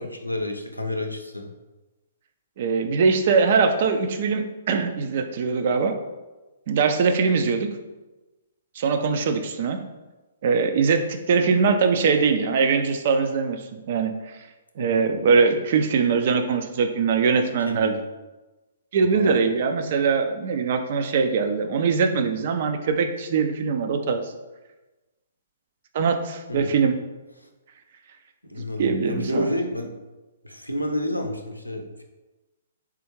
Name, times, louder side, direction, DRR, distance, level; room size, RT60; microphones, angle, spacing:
voice 1, 0.0-1.5 14.8-15.0 17.7-18.0 19.1-19.3 26.5-26.8 27.4-27.5 28.4-29.9 30.4-32.0, left 1 dB, 90° left, 3 dB, 0.5 m, -30 dB
voice 2, 2.6-6.0 6.7-7.7 8.8-9.8 10.4-13.6 13.9-14.1 14.8-17.9 18.9-24.2 25.9-27.0 28.8-29.5, right 5 dB, 45° right, 6 dB, 0.4 m, -22 dB
3.6 x 3.4 x 2.9 m, 1.1 s
figure-of-eight pair, 120°, 0 cm